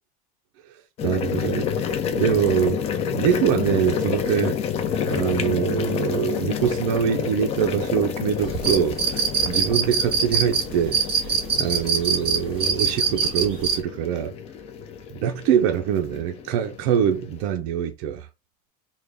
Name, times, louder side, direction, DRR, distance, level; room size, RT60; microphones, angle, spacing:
sound 1, 1.0-17.4, left 7 dB, 35° left, 0.5 m, -29 dB
voice 1, 1.0-1.7 2.1-2.8 3.1-4.6 5.0-11.0 11.6-14.3 15.1-18.3, right 9 dB, 65° right, 0.5 m, -24 dB
sound 2, 8.4-13.7, right 6 dB, 30° right, 2.0 m, -22 dB
3.6 x 2.2 x 3.4 m
supercardioid pair, 150°, 19 cm